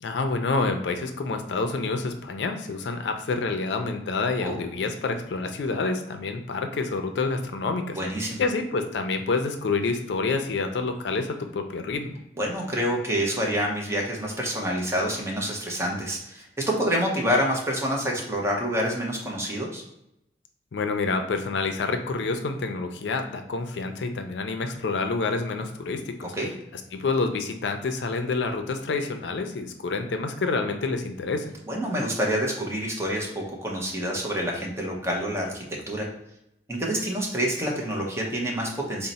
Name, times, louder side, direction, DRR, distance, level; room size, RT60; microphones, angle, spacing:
voice 1, 0.0-8.0 8.4-12.1 20.7-26.3 26.9-31.5, left 3 dB, 75° left, 6 dB, 0.4 m, -28 dB
voice 2, 7.9-8.4 12.4-19.8 26.3-26.5 31.7-36.1 36.7-39.1, equal, 15° right, -1 dB, 0.6 m, -27 dB
3.9 x 2.0 x 4.0 m, 0.84 s
head